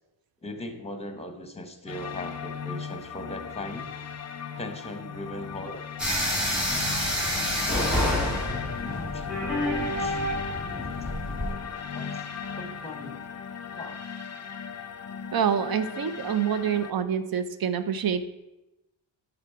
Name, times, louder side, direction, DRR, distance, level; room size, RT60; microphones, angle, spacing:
voice 1, 0.4-3.9 4.6-5.9 6.8-6.9 8.0-9.6 10.0-11.1 11.4-13.3 13.7-14.0, left 1 dB, 15° left, 7 dB, 1.0 m, -40 dB
sound 1, 1.9-16.9, left 6 dB, 35° left, 0.7 m, -37 dB
sound 2, 6.0-11.5, equal, ahead, 2.5 m, -28 dB
voice 2, 15.3-18.3, right 8 dB, 50° right, 11 dB, 0.6 m, -26 dB
9.0 x 3.9 x 4.7 m, 0.96 s
cardioid pair, 85°, 46 cm